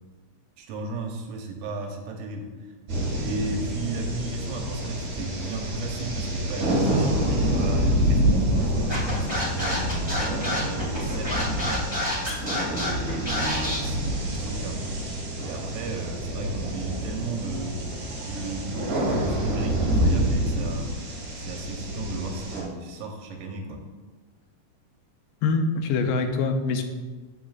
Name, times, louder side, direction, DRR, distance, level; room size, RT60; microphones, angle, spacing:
voice 1, 0.6-2.5 3.2-11.8 12.7-14.8 15.4-17.8 18.2-20.9 21.4-23.8, right 3 dB, 85° right, 3 dB, 2.5 m, -35 dB
sound 1, 2.9-22.6, equal, 60° right, 3.2 m, -27 dB
Scratching (performance technique), 8.9-13.8, left 1 dB, 30° left, 0.4 m, -29 dB
voice 2, 25.4-26.8, left 4 dB, 85° left, 6 dB, 2.3 m, -24 dB
13.5 x 4.7 x 2.4 m, 1.3 s
omnidirectional pair, 3.8 m